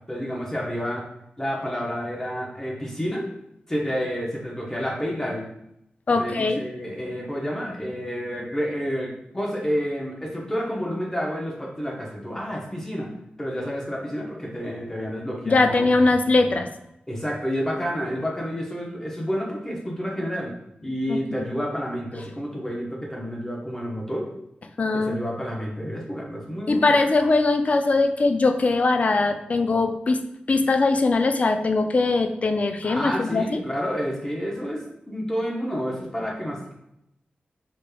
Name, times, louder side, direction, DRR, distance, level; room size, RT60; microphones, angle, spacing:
voice 1, 0.1-1.0 1.4-3.3 3.7-5.5 6.1-13.1 13.4-15.9 17.1-20.5 20.8-24.3 24.9-27.0 32.8-36.7, equal, 15° left, -1 dB, 0.9 m, -29 dB
voice 2, 6.1-6.6 15.5-16.7 21.1-21.2 24.8-25.2 26.7-30.2 30.5-33.5, left 3 dB, 45° left, 7 dB, 0.3 m, -21 dB
4.9 x 3.1 x 2.2 m, 0.81 s
wide cardioid pair, 120°, 3 cm